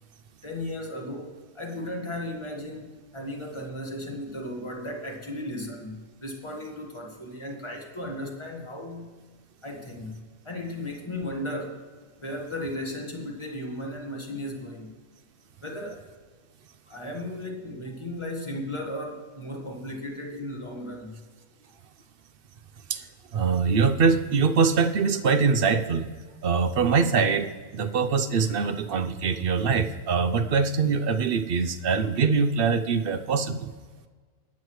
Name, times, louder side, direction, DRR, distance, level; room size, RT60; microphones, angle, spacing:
voice 1, 0.4-9.2 9.6-11.8 12.2-14.9 15.6-16.0 16.9-21.2, left 1 dB, 20° left, 0 dB, 1.7 m, -35 dB
voice 2, 23.3-26.1 26.4-33.7, right 5 dB, 55° right, 9 dB, 0.7 m, -23 dB
20.0 x 8.4 x 3.1 m, 1.5 s
omnidirectional pair, 1.4 m